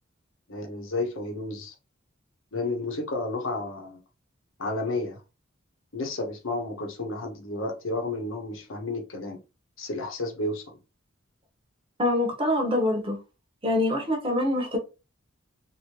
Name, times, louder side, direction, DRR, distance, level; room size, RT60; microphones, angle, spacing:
voice 1, 0.5-1.7 2.5-4.0 4.6-5.2 5.9-9.4 9.8-10.8, left 2 dB, 75° left, 0.9 m, -31 dB
voice 2, 12.0-13.2 13.6-14.8, left 1 dB, 25° right, 0.9 m, -25 dB
2.9 x 2.6 x 3.1 m
head